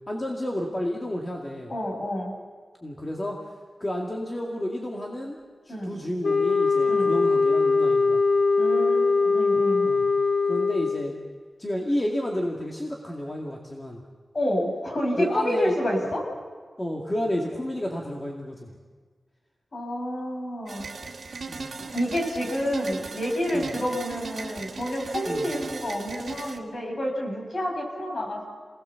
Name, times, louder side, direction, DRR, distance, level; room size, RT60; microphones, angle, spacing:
voice 1, 0.1-1.7 2.8-3.5 3.8-5.4 5.6-8.2 9.8-10.0 10.5-11.2 11.6-14.0 15.2-15.8 16.8-18.7 21.4-21.7 23.5-23.7 25.3-25.5, left 1 dB, 25° left, -1 dB, 2.3 m, -30 dB
voice 2, 1.7-2.3 5.7-6.0 6.9-7.1 8.6-9.9 14.3-16.2 19.7-20.9 21.9-28.4, equal, 45° left, 0 dB, 6.4 m, -29 dB
sound 1, 6.2-11.1, left 4 dB, 75° left, 1.0 m, -22 dB
piovono-pianoforti, 20.7-26.6, right 4 dB, 70° right, 2.2 m, -38 dB
27.5 x 19.0 x 7.1 m, 1.6 s
wide cardioid pair, 100°, 0 cm